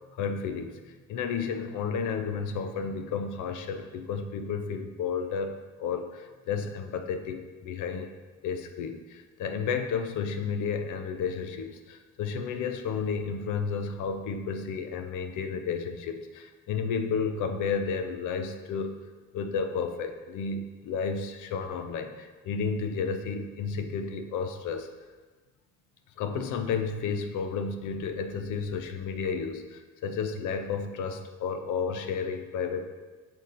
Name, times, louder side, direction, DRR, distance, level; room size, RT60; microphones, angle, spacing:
voice 1, 0.1-8.1 8.4-19.0 19.3-24.9 26.2-32.8, left 5 dB, 80° left, 7 dB, 0.7 m, -32 dB
7.0 x 3.8 x 4.1 m, 1.3 s
cardioid pair, 90°, 30 cm